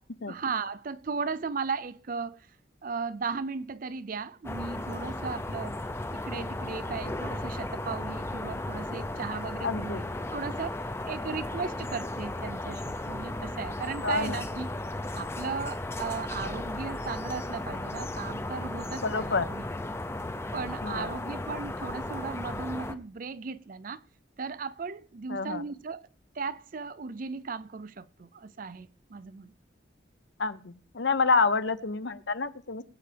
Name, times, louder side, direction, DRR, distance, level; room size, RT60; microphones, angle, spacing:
voice 1, 0.3-2.5 2.8-5.8 6.1-10.0 10.3-10.8 11.1-14.7 15.1-19.6 20.5-24.0 24.4-26.0 26.3-29.5, right 5 dB, 45° right, 0.5 m, -36 dB
sound 1, 4.4-22.9, left 1 dB, 15° left, 0.6 m, -35 dB
voice 2, 9.6-10.1 14.0-14.4 19.0-19.5 20.8-21.1 25.3-25.6 30.4-32.8, left 4 dB, 70° left, 0.8 m, -28 dB
21.5 x 8.8 x 3.4 m
head